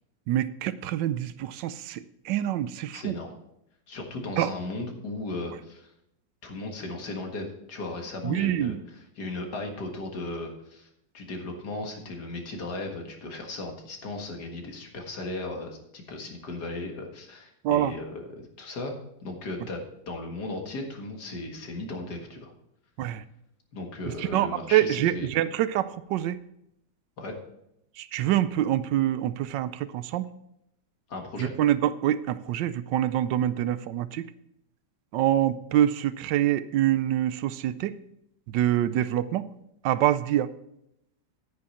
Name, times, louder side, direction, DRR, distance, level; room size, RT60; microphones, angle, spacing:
voice 1, 0.3-2.0 2.3-3.1 4.4-4.5 8.2-8.8 17.6-17.9 23.0-23.2 24.3-26.4 28.0-30.3 31.4-34.2 35.1-37.9 38.5-39.4 39.8-40.5, right 12 dB, 80° right, 15 dB, 1.2 m, -25 dB
voice 2, 2.9-3.3 3.9-5.9 6.4-10.9 11.1-18.9 19.2-22.5 23.7-25.3 27.2-27.3 31.1-31.5, left 2 dB, 60° left, 2 dB, 2.2 m, -36 dB
9.9 x 9.5 x 4.2 m, 0.79 s
omnidirectional pair, 2.0 m